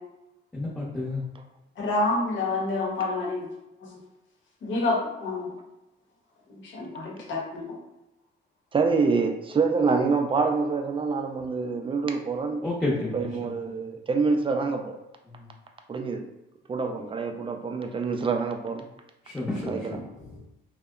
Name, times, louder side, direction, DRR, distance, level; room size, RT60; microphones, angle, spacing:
voice 1, 0.5-1.2 12.6-13.5 15.4-15.5 19.2-20.4, left 2 dB, 10° left, -8 dB, 0.7 m, -31 dB
voice 2, 1.8-3.5 4.6-5.5 6.7-7.7, left 2 dB, 70° left, -2 dB, 0.8 m, -27 dB
voice 3, 8.7-12.6 13.1-15.0 15.9-16.2 16.7-18.9 19.7-20.0, right 4 dB, 25° right, 4 dB, 0.3 m, -26 dB
2.7 x 2.1 x 2.3 m, 0.92 s
cardioid pair, 90°, 20 cm